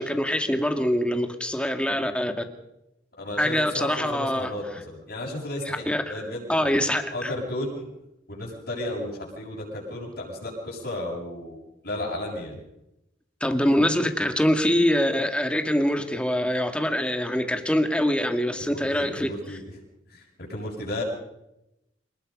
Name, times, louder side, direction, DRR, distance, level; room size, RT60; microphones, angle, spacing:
voice 1, 0.0-2.3 3.4-4.5 5.7-6.2 6.5-7.3 13.4-19.3, equal, 5° left, 6 dB, 2.1 m, -24 dB
voice 2, 3.2-6.8 7.1-7.9 8.3-12.6 18.6-19.6 20.1-21.0, left 1 dB, 65° left, -7 dB, 7.3 m, -34 dB
27.0 x 20.0 x 5.4 m, 0.88 s
head